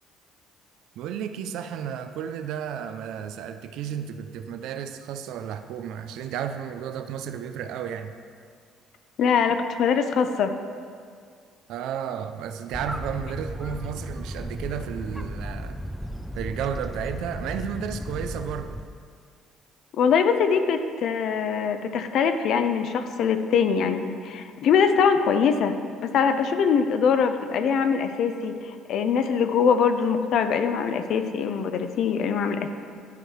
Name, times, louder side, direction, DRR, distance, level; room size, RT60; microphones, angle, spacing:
voice 1, 1.0-8.1 11.7-15.8 16.3-18.8, right 8 dB, 75° right, 9 dB, 0.4 m, -33 dB
voice 2, 9.2-10.5 19.9-32.7, left 6 dB, 65° left, 8 dB, 0.5 m, -23 dB
sound 1, 12.7-18.9, equal, ahead, 0.4 m, -35 dB
10.5 x 4.8 x 4.7 m, 2.1 s
cardioid pair, 95°, 0 cm